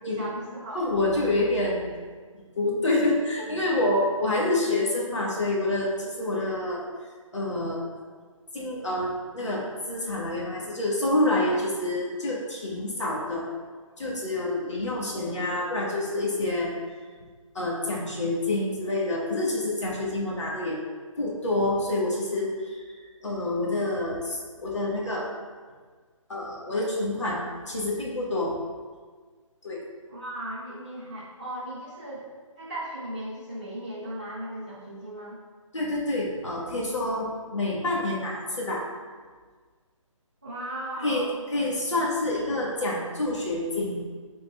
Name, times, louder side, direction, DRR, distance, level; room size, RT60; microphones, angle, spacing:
voice 1, 0.2-0.8 30.1-32.3 32.6-35.4 40.4-41.4, right 1 dB, 15° right, -10 dB, 0.5 m, -37 dB
voice 2, 0.7-2.0 2.3-6.8 7.3-7.8 8.5-13.5 14.0-16.7 17.5-20.8 21.2-25.3 26.3-28.6 29.6-29.8 35.7-38.8 41.0-41.3 41.5-44.0, left 2 dB, 60° left, -4 dB, 1.8 m, -27 dB
11.5 x 3.9 x 2.4 m, 1.5 s
hypercardioid pair, 180°, 17 cm